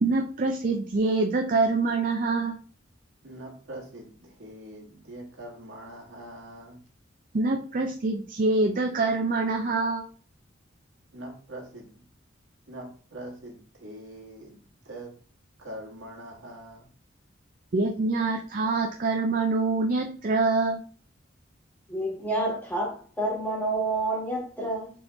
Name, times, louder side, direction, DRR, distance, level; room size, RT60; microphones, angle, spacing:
voice 1, 0.0-2.5 7.3-10.1 17.7-20.8, right 3 dB, 45° right, 0.5 m, -25 dB
voice 2, 3.2-6.8 11.1-12.0 12.7-14.6 14.9-15.1 15.6-16.9, right 1 dB, 80° right, 1.6 m, -43 dB
voice 3, 21.9-24.9, right 2 dB, 10° left, 1.4 m, -29 dB
4.3 x 3.1 x 3.4 m
head